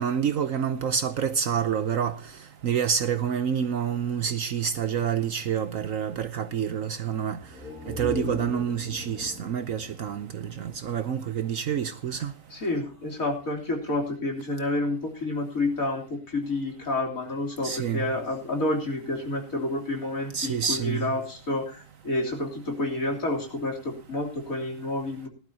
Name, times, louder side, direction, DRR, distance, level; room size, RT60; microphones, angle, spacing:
voice 1, 0.0-2.2 2.6-7.4 7.9-12.3 17.6-18.1 20.3-21.1, right 8 dB, 60° right, 1.1 m, -28 dB
sound 1, 7.4-11.1 11.4-11.5, left 1 dB, ahead, 7.9 m, -38 dB
voice 2, 12.5-25.3, left 2 dB, 55° left, 3.7 m, -29 dB
19.0 x 12.0 x 2.8 m
omnidirectional pair, 1.8 m